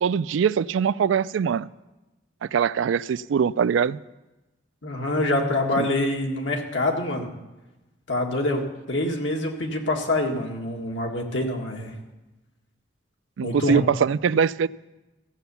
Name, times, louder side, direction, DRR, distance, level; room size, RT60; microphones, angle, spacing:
voice 1, 0.0-1.7 2.4-4.0 5.8-5.9 13.4-14.7, right 7 dB, 90° right, 18 dB, 0.3 m, -22 dB
voice 2, 4.8-7.3 8.1-11.9 13.4-13.8, left 1 dB, 85° left, 1 dB, 1.9 m, -25 dB
15.0 x 8.0 x 7.0 m, 1.1 s
head